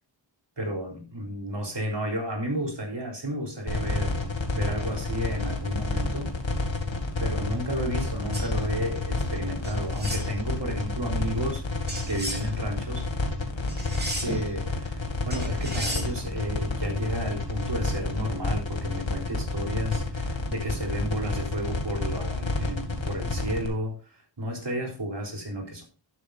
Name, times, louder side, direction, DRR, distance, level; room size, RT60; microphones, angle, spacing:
voice 1, 0.6-6.3 7.2-11.7 12.1-13.1 14.2-25.8, equal, 65° right, 3.8 m, -32 dB
sound 1, 3.7-23.7, left 3 dB, 80° left, 2.3 m, -29 dB
sound 2, 8.3-8.5 9.6-10.3 11.9-12.5 13.7-14.5 15.3-16.1, right 1 dB, 20° right, 3.3 m, -34 dB
11.5 x 9.5 x 2.6 m
wide cardioid pair, 40°, 46 cm